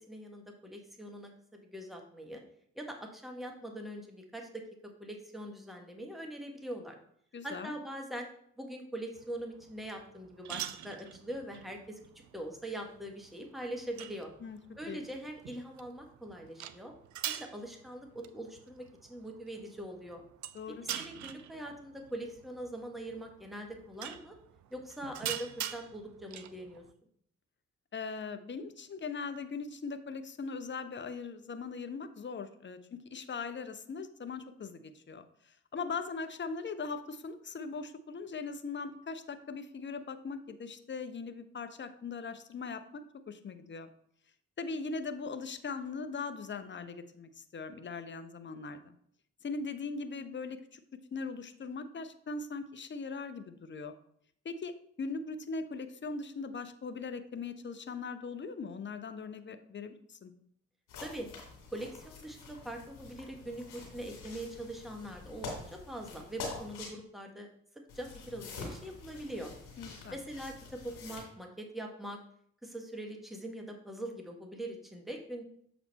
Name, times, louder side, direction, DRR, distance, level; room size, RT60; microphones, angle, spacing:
voice 1, 0.0-2.4 2.7-4.6 5.0-6.9 7.4-8.3 8.6-12.0 12.3-14.3 14.8-16.9 17.2-20.2 20.8-24.4 24.7-26.8 61.0-61.3 61.7-67.5 67.9-69.5 70.1-72.2 72.6-75.4, right 1 dB, ahead, 2 dB, 1.5 m, -42 dB
voice 2, 7.3-7.7 14.4-14.6 14.9-15.0 20.5-20.8 27.9-32.8 33.1-43.9 44.6-48.9 49.4-50.8 51.1-53.9 54.4-54.7 55.0-60.3 69.8-70.2, left 4 dB, 30° left, 10 dB, 0.8 m, -40 dB
sound 1, 9.2-26.9, right 11 dB, 45° right, 0.5 m, -45 dB
sound 2, 60.9-66.9 67.9-71.2, left 3 dB, 70° left, 2.2 m, -46 dB
6.8 x 4.3 x 4.1 m, 0.66 s
hypercardioid pair, 40°, 40 cm